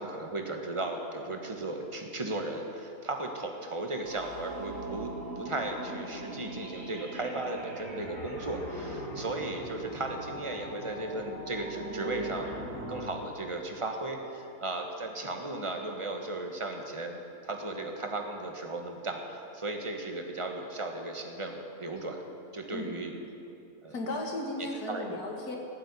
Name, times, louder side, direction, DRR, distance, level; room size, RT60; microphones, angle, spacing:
voice 1, 0.0-5.1 5.4-12.6 12.9-22.2 22.5-23.1 23.8-24.0 24.6-25.2, right 2 dB, 20° right, 3 dB, 1.3 m, -36 dB
sound 1, 4.0-13.1, right 1 dB, 40° right, 3.3 m, -40 dB
voice 2, 23.9-25.6, left 1 dB, 85° left, 1 dB, 2.4 m, -35 dB
15.5 x 7.6 x 9.8 m, 2.7 s
omnidirectional pair, 1.6 m